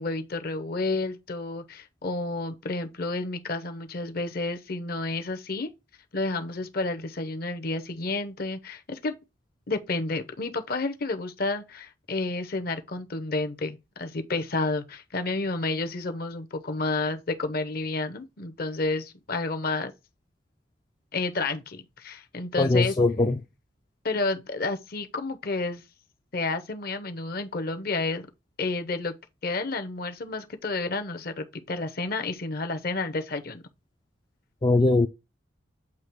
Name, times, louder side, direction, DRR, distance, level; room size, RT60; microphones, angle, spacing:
voice 1, 0.0-5.7 6.1-9.1 9.7-19.9 21.1-22.9 24.0-25.8 26.3-28.3 28.6-29.1 29.4-33.6, left 3 dB, 50° left, 0.8 m, -30 dB
voice 2, 22.6-23.4 34.6-35.1, left 2 dB, 20° left, 0.3 m, -21 dB
8.3 x 2.8 x 4.6 m
head